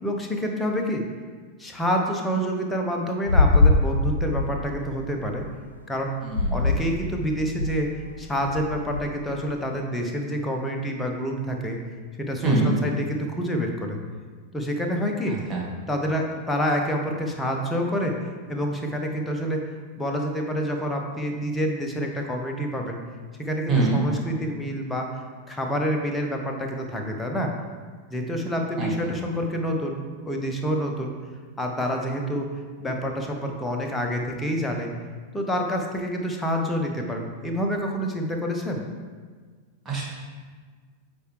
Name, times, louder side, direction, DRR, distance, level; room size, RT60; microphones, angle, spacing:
voice 1, 0.0-1.0 1.6-5.4 5.9-6.1 6.5-11.8 12.2-14.0 14.5-15.4 15.9-18.2 18.5-19.6 20.0-23.0 23.4-27.5 28.1-30.0 30.3-31.1 31.6-32.5 32.8-34.9 35.3-38.8, equal, 10° left, 2 dB, 0.9 m, -27 dB
sound 1, 3.3-5.4 6.2-6.9 7.3-7.8 8.4-9.0, left 2 dB, 80° left, 0.3 m, -22 dB
voice 2, 6.2-6.7 12.4-12.8 15.3-15.7 23.7-24.1 28.8-29.2 39.9-40.0, right 3 dB, 20° right, -4 dB, 1.8 m, -25 dB
8.2 x 4.5 x 3.2 m, 1.5 s
figure-of-eight pair, 90°, 0 cm